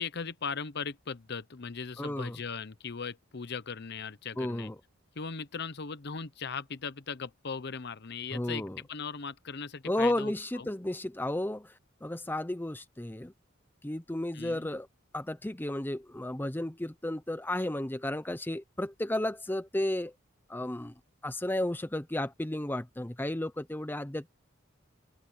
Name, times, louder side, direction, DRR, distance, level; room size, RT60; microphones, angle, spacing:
voice 1, 0.0-4.7 5.2-10.7 14.3-14.7, left 5 dB, 55° left, 0.9 m, -38 dB
voice 2, 2.0-2.4 4.4-4.8 8.3-8.8 9.9-11.7 12.0-13.3 13.8-14.9 15.1-20.1 20.5-20.9 21.2-24.3, left 1 dB, 10° left, 0.6 m, -33 dB
open air
head